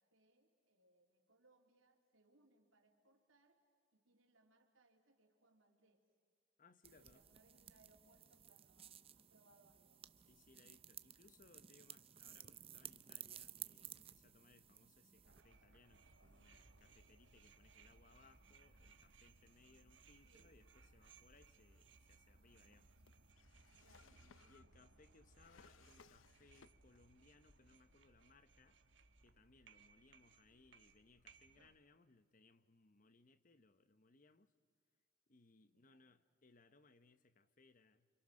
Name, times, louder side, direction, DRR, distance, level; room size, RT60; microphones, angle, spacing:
voice 1, 0.0-3.6 3.9-6.0 6.8-10.0 20.2-20.6 23.8-24.9 30.0-30.7 35.7-36.1, right 2 dB, 85° right, 3 dB, 3.3 m, -74 dB
voice 2, 6.6-7.2 10.3-22.9 24.0-28.8 29.2-34.5 35.3-38.1, left 3 dB, 40° left, 13 dB, 0.9 m, -69 dB
sound 1, 6.8-15.4, right 11 dB, 30° right, 0.6 m, -56 dB
sound 2, 15.2-31.8, right 3 dB, 65° right, 1.3 m, -66 dB
Drawer open or close, 22.4-27.1 27.4-28.3, left 5 dB, 80° left, 0.6 m, -68 dB
28.0 x 25.5 x 6.4 m, 2.1 s
head